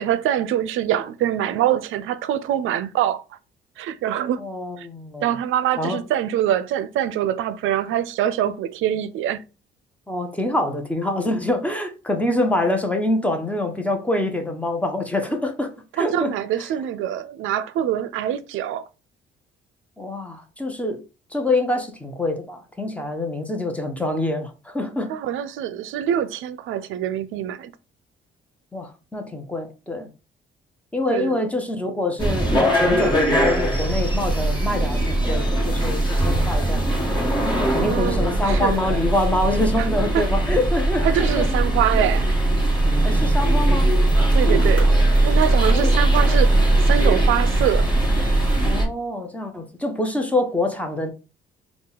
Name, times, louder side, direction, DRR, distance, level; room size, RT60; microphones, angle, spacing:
voice 1, 0.0-3.2 3.8-4.4 4.8-4.9 5.2-9.4 16.0-18.9 25.1-27.7 31.1-31.4 37.8-38.8 39.8-39.9 40.1-40.3 41.0-42.3 44.3-44.9 45.2-46.6 46.9-47.9, right 11 dB, 85° right, 0.5 m, -24 dB
voice 2, 4.4-5.4 5.8-6.0 10.1-16.3 20.0-21.0 21.3-25.1 28.7-30.1 30.9-36.9 37.6-41.5 43.0-43.9 45.7-46.0 48.6-51.1, left 1 dB, 5° left, 0.9 m, -25 dB
sound 1, 32.2-48.8, right 1 dB, 20° left, 1.6 m, -20 dB
3.7 x 2.4 x 3.9 m
cardioid pair, 90°, 20 cm